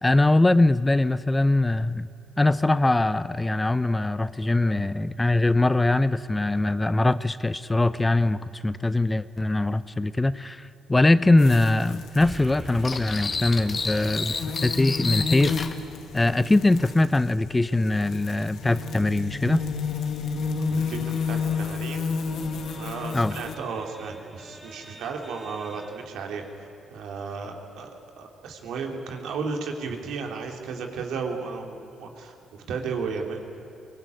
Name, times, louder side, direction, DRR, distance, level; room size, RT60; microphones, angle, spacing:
voice 1, 0.0-2.1 2.4-15.6 16.1-19.6 23.1-23.4, left 2 dB, 15° left, 15 dB, 0.6 m, -22 dB
sound 1, 11.4-23.5, left 5 dB, 75° left, 1.8 m, -31 dB
sound 2, 12.2-26.5, right 1 dB, 15° right, 2.4 m, -46 dB
sound 3, 12.8-15.7, left 4 dB, 35° left, 1.6 m, -31 dB
voice 2, 20.7-22.1 22.7-26.4 26.9-27.9 28.2-32.3 32.7-33.4, right 5 dB, 80° right, 3 dB, 3.1 m, -34 dB
23.0 x 20.0 x 9.5 m, 3.0 s
cardioid pair, 90°, 0 cm